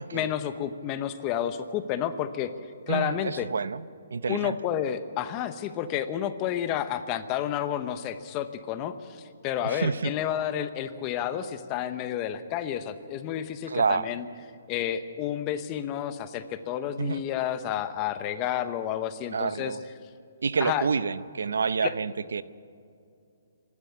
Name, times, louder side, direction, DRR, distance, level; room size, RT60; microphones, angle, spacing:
voice 1, 0.0-2.5 2.9-3.5 4.3-14.2 14.7-19.8 20.6-20.9 21.8-21.9, left 10 dB, 20° left, 11 dB, 0.9 m, -30 dB
voice 2, 2.9-3.8 4.1-4.6 9.6-10.1 13.7-14.1 17.0-17.2 19.3-19.8 20.4-22.4, right 5 dB, 85° right, 16 dB, 0.7 m, -28 dB
26.0 x 12.0 x 8.4 m, 2.5 s
hypercardioid pair, 165°, 0 cm